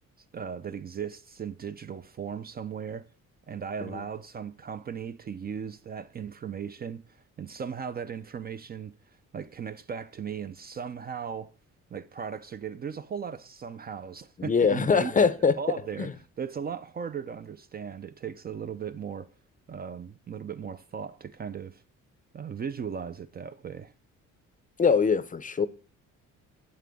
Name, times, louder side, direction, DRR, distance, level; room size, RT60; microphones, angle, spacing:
voice 1, 0.3-3.0 3.5-9.0 9.3-11.5 11.9-15.3 15.6-16.1 16.4-19.3 19.7-21.8 22.3-23.9, right 7 dB, 30° right, 0.4 m, -37 dB
voice 2, 14.4-15.6 16.0-16.1 24.8-25.7, left 5 dB, 25° left, 0.5 m, -23 dB
7.7 x 7.6 x 3.5 m
cardioid pair, 90°, 30 cm